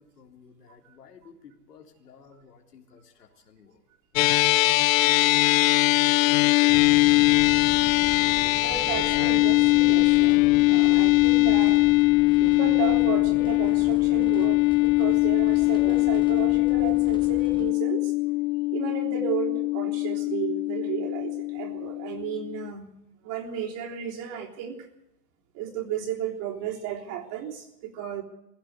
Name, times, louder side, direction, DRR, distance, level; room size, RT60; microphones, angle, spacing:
voice 1, 0.0-3.8 4.7-5.4 5.9-7.8, left 6 dB, 85° left, 3 dB, 3.7 m, -52 dB
sound 1, 4.2-22.7, left 20 dB, 60° left, 0.6 m, -21 dB
sound 2, 6.7-17.7, left 5 dB, 10° left, 1.1 m, -42 dB
voice 2, 8.6-11.9 12.4-18.1 18.7-22.9 23.2-24.8 25.6-28.2, right 9 dB, 40° right, 1 dB, 3.4 m, -34 dB
20.0 x 16.0 x 8.2 m, 0.89 s
hypercardioid pair, 120°, 46 cm